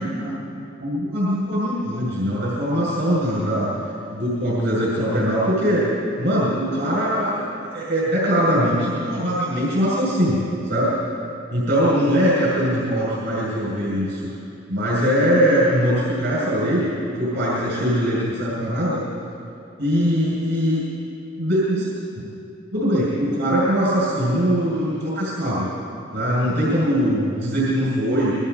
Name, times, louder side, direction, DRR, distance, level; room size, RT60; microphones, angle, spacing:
voice 1, 0.0-3.7 4.1-5.9 6.2-7.4 7.7-10.9 11.5-14.3 14.7-16.9 17.2-19.0 19.8-20.8 21.4-21.9 22.7-25.7 26.1-28.4, equal, 65° right, -8 dB, 7.3 m, -21 dB
28.5 x 22.5 x 4.3 m, 2.7 s
head